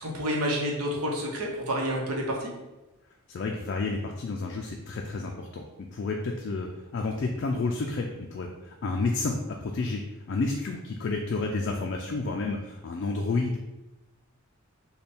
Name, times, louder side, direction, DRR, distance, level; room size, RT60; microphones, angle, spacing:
voice 1, 0.0-2.5, equal, 85° right, -1 dB, 0.8 m, -29 dB
voice 2, 3.3-5.6 5.9-10.0 10.3-13.6, left 3 dB, 50° left, 1 dB, 0.3 m, -30 dB
3.4 x 2.2 x 4.1 m, 1.0 s
head